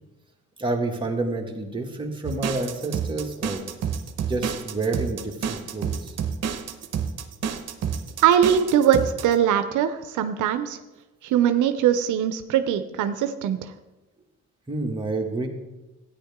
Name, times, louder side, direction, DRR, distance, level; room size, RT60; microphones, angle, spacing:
voice 1, 0.6-3.7 4.3-6.1 14.7-15.5, right 2 dB, 15° right, 0 dB, 2.0 m, -29 dB
sound 1, 2.2-9.3, right 7 dB, 55° right, 1.0 m, -29 dB
voice 2, 8.2-10.8 11.2-13.7, right 9 dB, 80° right, 9 dB, 0.7 m, -21 dB
13.0 x 9.7 x 3.6 m, 1.1 s
cardioid pair, 90°, 30 cm